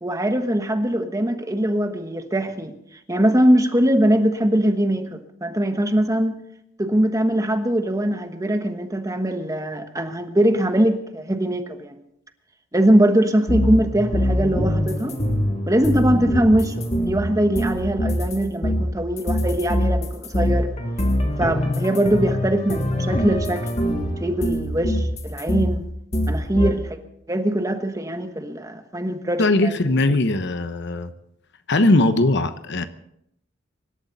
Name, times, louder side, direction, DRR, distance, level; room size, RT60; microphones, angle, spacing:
voice 1, 0.0-2.7 3.1-6.3 6.8-12.0 12.7-15.2 15.7-20.7 21.4-25.9 26.3-27.0 27.3-29.8 30.1-30.2, right 1 dB, 15° right, 1.2 m, -22 dB
sound 1, 13.5-18.4 18.6-25.8 26.1-26.7, equal, 35° left, 1.9 m, -23 dB
voice 2, 29.4-31.1 31.7-32.8, left 2 dB, 60° left, 1.0 m, -19 dB
25.0 x 12.0 x 4.1 m
head